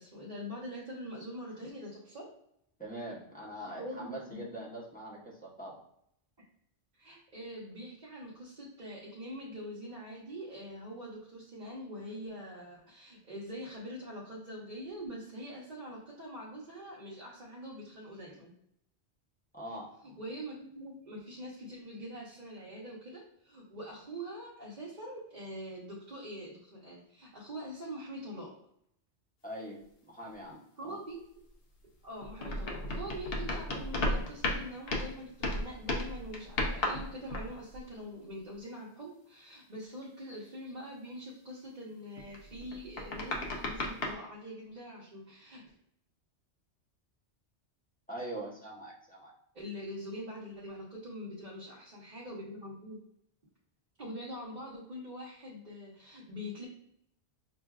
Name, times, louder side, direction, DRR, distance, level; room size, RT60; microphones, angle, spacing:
voice 1, 0.0-2.2 3.6-4.5 7.0-18.5 20.0-28.5 30.8-31.2 32.0-45.6 49.5-53.0 54.0-56.6, equal, 40° right, -6 dB, 1.0 m, -44 dB
voice 2, 2.8-5.8 19.5-20.0 29.4-29.8 30.1-31.0 48.1-49.3, right 1 dB, 10° left, -6 dB, 0.9 m, -43 dB
sound 1, 32.2-35.2 35.4-37.9 42.2-44.1, left 1 dB, 60° left, 0.9 m, -34 dB
5.9 x 2.5 x 2.4 m, 0.72 s
omnidirectional pair, 1.2 m